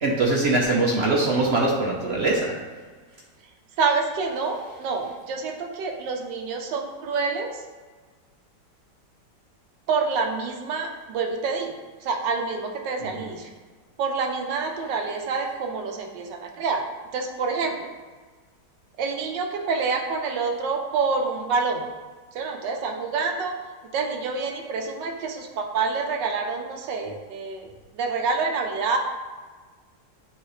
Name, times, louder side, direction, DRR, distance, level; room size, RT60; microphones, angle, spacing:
voice 1, 0.0-2.5 13.1-13.3, right 2 dB, 50° right, -2 dB, 0.8 m, -22 dB
voice 2, 3.8-7.6 9.9-11.8 12.0-13.5 14.0-16.8 17.1-17.9 19.0-21.8 22.3-23.5 23.9-29.0, right 4 dB, 80° right, 3 dB, 1.4 m, -27 dB
8.8 x 3.8 x 3.2 m, 1.4 s
omnidirectional pair, 1.9 m